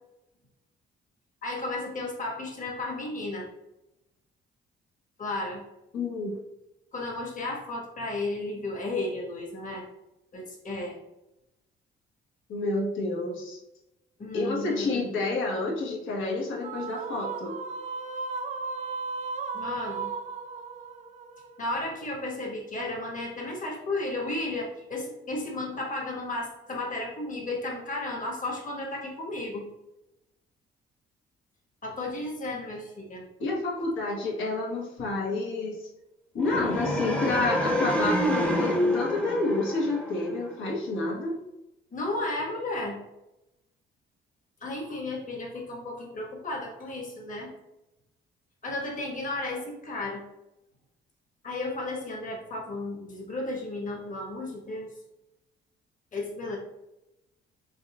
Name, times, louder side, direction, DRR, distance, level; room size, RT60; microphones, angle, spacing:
voice 1, 1.4-3.5 5.2-5.6 6.9-9.8 10.3-11.0 14.2-15.0 19.5-20.1 21.6-29.6 31.8-33.2 41.9-43.0 44.6-47.5 48.6-50.2 51.4-54.9 56.1-56.6, left 2 dB, 40° left, -1 dB, 1.3 m, -33 dB
voice 2, 5.9-6.4 12.5-13.6 14.3-17.6 33.4-35.9 36.3-41.4, left 2 dB, 80° left, -2 dB, 1.2 m, -29 dB
sound 1, 16.6-22.1, right 4 dB, 40° right, 0.4 m, -36 dB
sound 2, 36.4-40.5, equal, 5° left, 0.7 m, -27 dB
4.2 x 3.6 x 2.3 m, 0.91 s
cardioid pair, 90°, 20 cm